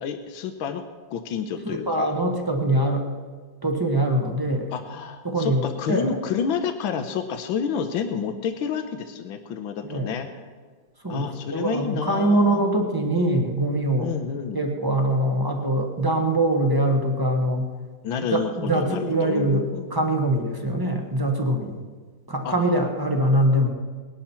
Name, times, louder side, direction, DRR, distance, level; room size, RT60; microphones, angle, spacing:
voice 1, 0.0-0.8 1.1-2.1 4.7-10.4 11.1-12.6 14.0-14.7 18.0-19.9 22.4-22.8, left 7 dB, 85° left, 7 dB, 1.6 m, -29 dB
voice 2, 1.6-3.1 3.6-4.7 5.2-5.6 5.9-6.1 9.8-10.1 11.0-14.1 14.5-17.7 18.3-19.6 19.9-21.8 22.3-23.7, right 1 dB, 15° right, 2 dB, 1.1 m, -23 dB
19.5 x 11.5 x 4.4 m, 1.5 s
omnidirectional pair, 2.1 m